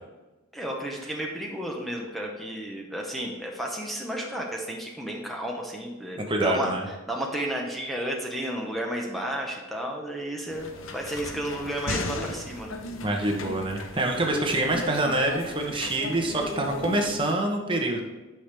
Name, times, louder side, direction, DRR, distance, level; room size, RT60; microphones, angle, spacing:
voice 1, 0.5-6.7 7.1-12.8, right 1 dB, ahead, -1 dB, 0.9 m, -32 dB
voice 2, 6.3-6.9 13.0-18.0, right 1 dB, 25° right, 2 dB, 1.0 m, -26 dB
sound 1, 10.5-17.2, left 2 dB, 90° left, 0.9 m, -36 dB
12.0 x 5.8 x 3.5 m, 1.2 s
head